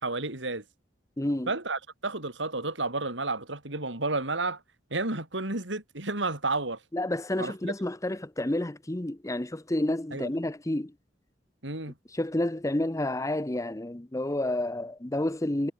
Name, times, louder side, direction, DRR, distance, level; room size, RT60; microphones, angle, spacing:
voice 1, 0.0-0.6 1.5-4.6 4.9-6.8 7.4-7.7 10.1-10.3 11.6-11.9, right 3 dB, 75° right, 5.2 m, -31 dB
voice 2, 1.2-1.5 6.9-10.9 12.1-15.7, left 1 dB, 15° left, 0.8 m, -30 dB
head